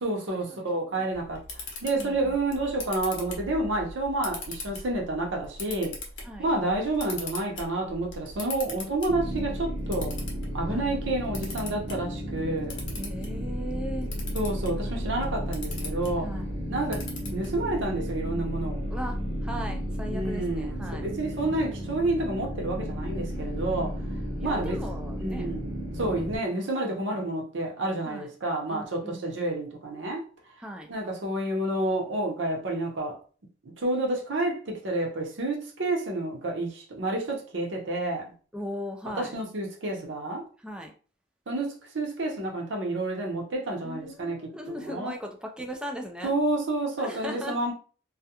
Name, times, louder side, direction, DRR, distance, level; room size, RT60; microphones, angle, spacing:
voice 1, 0.0-1.4 1.8-6.0 6.4-10.1 10.5-12.8 14.3-16.3 16.7-17.0 17.3-18.9 20.1-24.0 24.4-24.8 25.2-30.2 30.9-33.2 33.8-38.3 39.0-40.4 41.5-44.4 44.7-45.1 46.2-47.7, right 2 dB, 70° right, 0.7 m, -29 dB
Camera, 1.1-17.8, left 2 dB, 75° left, 0.8 m, -41 dB
voice 2, 1.9-2.4 6.2-6.5 10.7-10.9 13.0-14.1 15.0-15.1 16.2-16.4 18.9-21.1 21.4-21.6 23.8-24.0 24.4-25.6 26.2-26.3 27.1-27.2 28.1-28.3 28.7-29.5 30.6-30.9 38.5-39.4 40.6-40.9 43.8-46.3 47.0-47.6, equal, 5° right, 0.3 m, -38 dB
sound 1, 9.1-26.4, equal, 20° right, 0.8 m, -33 dB
2.3 x 2.1 x 2.8 m
head